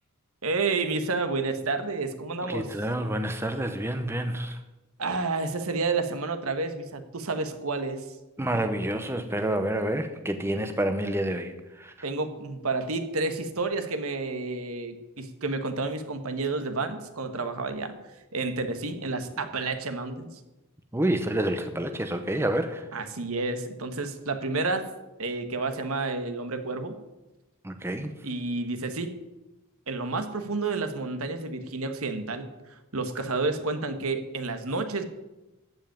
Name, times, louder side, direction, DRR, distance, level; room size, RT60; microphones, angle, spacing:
voice 1, 0.4-2.7 5.0-8.0 12.0-17.9 18.3-20.3 22.9-24.9 25.2-27.0 28.2-29.1 29.9-35.0, right 3 dB, 70° right, 8 dB, 1.3 m, -30 dB
voice 2, 2.5-4.6 8.4-11.9 20.9-22.9 27.6-28.1, right 1 dB, 10° right, 7 dB, 0.8 m, -28 dB
14.5 x 5.4 x 9.2 m, 1.0 s
head